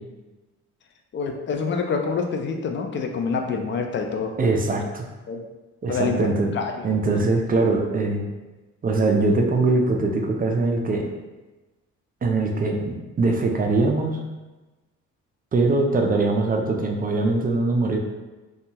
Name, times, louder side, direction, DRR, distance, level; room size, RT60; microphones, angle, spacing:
voice 1, 1.1-4.3 5.3-5.4 5.9-6.2 6.5-6.9, left 5 dB, 40° left, 4 dB, 0.4 m, -26 dB
voice 2, 4.4-5.1 5.8-6.5 6.8-8.2 8.8-11.1 12.2-14.2 15.5-18.0, right 3 dB, 30° right, 2 dB, 0.4 m, -22 dB
2.7 x 2.3 x 2.7 m, 1.2 s
cardioid pair, 90°, 30 cm